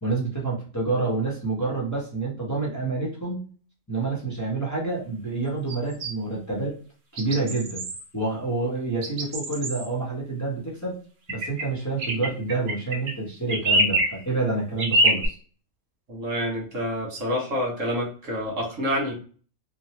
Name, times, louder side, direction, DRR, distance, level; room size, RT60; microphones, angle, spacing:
voice 1, 0.0-3.5 3.9-6.7 7.1-7.8 8.1-11.0 11.3-15.4, right 3 dB, 15° left, -4 dB, 0.8 m, -28 dB
sound 1, 5.7-6.1 7.2-8.0 9.0-9.9 11.3-11.7 12.0-13.2 13.5-14.2 14.8-15.3, right 1 dB, 55° right, 0.7 m, -25 dB
voice 2, 16.1-19.1, equal, 75° right, -2 dB, 1.5 m, -28 dB
3.1 x 2.2 x 2.8 m, 0.41 s
omnidirectional pair, 1.3 m